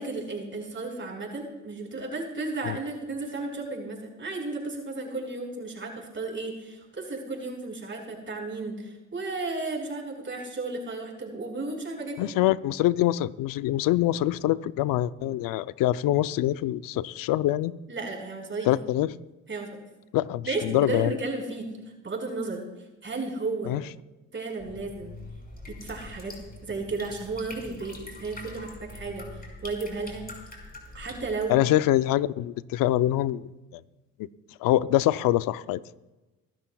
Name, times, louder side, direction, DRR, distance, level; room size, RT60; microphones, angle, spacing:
voice 1, 0.0-12.3 17.9-18.7 19.5-19.8 20.4-21.7 22.0-22.6 23.0-23.7 24.3-25.1 25.7-26.3 26.6-29.3 29.6-30.3 30.9-31.6, right 3 dB, 35° right, 1 dB, 4.9 m, -33 dB
voice 2, 12.2-17.7 18.7-19.1 20.1-21.2 23.7-23.8 31.5-33.8 34.6-35.8, left 14 dB, 75° left, 16 dB, 0.6 m, -24 dB
sound 1, 24.6-31.4, left 1 dB, 25° left, 5.1 m, -44 dB
24.5 x 12.0 x 2.3 m, 1.1 s
supercardioid pair, 60°, 34 cm